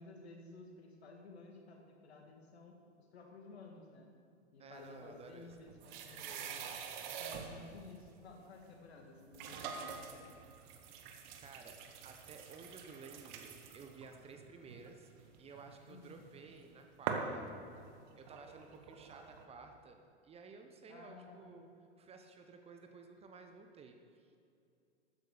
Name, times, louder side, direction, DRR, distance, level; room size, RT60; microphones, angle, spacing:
voice 1, 0.0-4.1 4.5-6.7 7.2-10.3 15.9-16.2 20.9-21.6, left 3 dB, 65° left, 2 dB, 2.0 m, -54 dB
voice 2, 4.6-5.6 11.4-15.1 15.4-17.5 18.2-21.7 22.0-24.4, right 4 dB, 15° right, 5 dB, 0.8 m, -54 dB
sound 1, 5.2-7.8 8.6-8.7 9.3-16.6 17.1-19.4, right 6 dB, 40° right, 1.3 m, -45 dB
13.0 x 9.5 x 5.0 m, 2.5 s
figure-of-eight pair, 90°, 34 cm